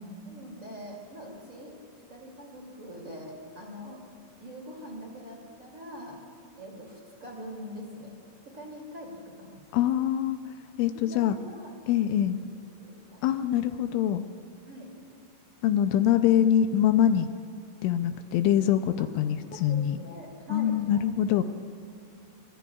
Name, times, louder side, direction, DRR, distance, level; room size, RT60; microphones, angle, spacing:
voice 1, 0.2-1.8 2.1-4.0 4.4-6.2 6.6-8.1 8.4-9.8 10.9-11.7 12.1-13.3 14.6-14.9 19.0-19.1 19.5-21.0, equal, 30° right, -2 dB, 1.5 m, -43 dB
voice 2, 9.7-10.4 10.8-11.4 11.9-12.4 13.2-14.2 15.6-17.3 17.8-20.0 20.5-21.4, left 10 dB, 85° left, 9 dB, 2.8 m, -24 dB
24.5 x 24.0 x 2.4 m, 2.5 s
omnidirectional pair, 5.9 m